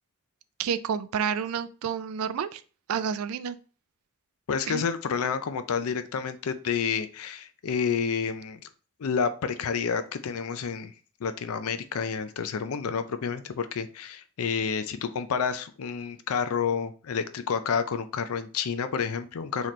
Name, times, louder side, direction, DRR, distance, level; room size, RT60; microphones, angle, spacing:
voice 1, 0.6-2.6 2.9-3.6 4.7-4.8, right 7 dB, 70° right, 13 dB, 0.3 m, -29 dB
voice 2, 4.5-8.7 9.0-10.9 11.2-19.7, left 6 dB, 70° left, 10 dB, 0.4 m, -29 dB
4.1 x 2.9 x 3.1 m, 0.37 s
head